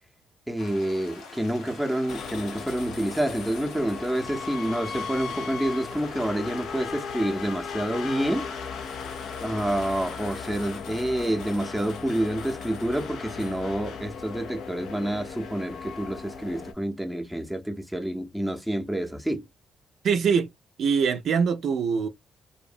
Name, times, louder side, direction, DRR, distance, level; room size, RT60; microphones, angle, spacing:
voice 1, 0.5-8.5 9.4-19.4, right 1 dB, ahead, 0.6 m, -28 dB
sound 1, 0.6-10.8, left 4 dB, 90° left, 0.8 m, -45 dB
sound 2, 2.1-16.7, left 5 dB, 75° left, 0.4 m, -37 dB
voice 2, 20.0-20.5 20.8-22.1, right 6 dB, 65° right, 0.3 m, -23 dB
2.7 x 2.0 x 2.4 m
cardioid pair, 90°, 0 cm